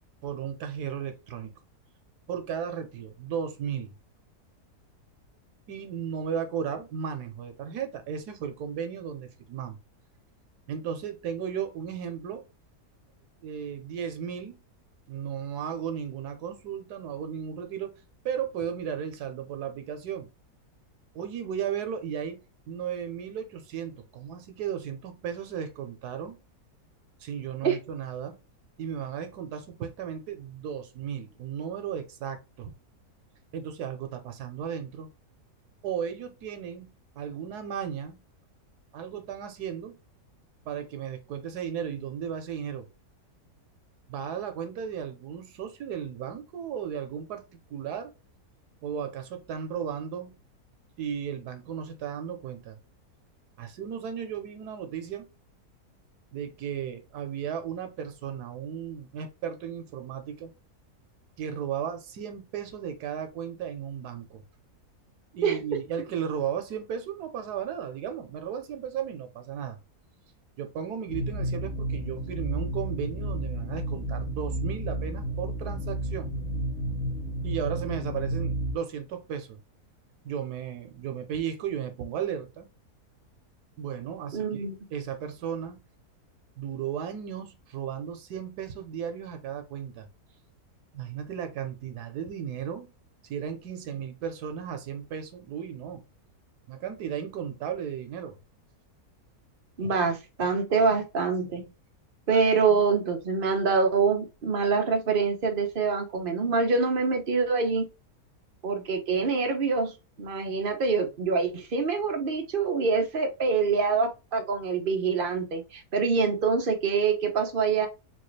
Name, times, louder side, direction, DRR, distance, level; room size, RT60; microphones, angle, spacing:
voice 1, 0.2-1.5 2.3-3.9 5.7-9.8 10.7-12.4 13.4-14.6 15.1-17.9 18.2-20.3 21.1-26.4 27.2-28.4 28.8-32.7 33.5-35.1 35.8-36.9 37.1-38.2 38.9-40.0 40.6-42.9 44.1-48.1 48.8-50.3 51.0-52.8 53.6-55.3 56.3-60.5 61.4-64.4 65.3-69.8 70.6-76.3 77.4-79.6 80.2-82.7 83.8-84.6 84.9-85.8 86.6-90.1 90.9-92.9 93.2-96.0 96.7-98.4, right 8 dB, 85° right, 1.3 m, -35 dB
sound 1, 71.1-78.7, right 1 dB, 55° left, 1.0 m, -31 dB
voice 2, 84.3-84.8 99.8-101.6 102.3-107.9 108.6-117.9, right 5 dB, 50° right, 0.7 m, -25 dB
4.0 x 2.4 x 3.1 m
omnidirectional pair, 1.7 m